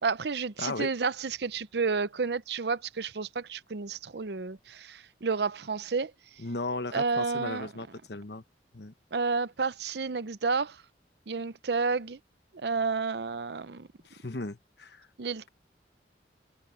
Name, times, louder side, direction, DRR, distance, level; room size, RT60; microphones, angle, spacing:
voice 1, 0.0-6.1 6.9-7.7 9.1-10.8 11.3-12.2 12.5-13.9 15.2-15.5, right 4 dB, 65° right, 0.7 m, -31 dB
voice 2, 0.6-0.9 6.4-8.4 8.7-8.9 14.1-15.1, left 2 dB, 65° left, 1.2 m, -36 dB
head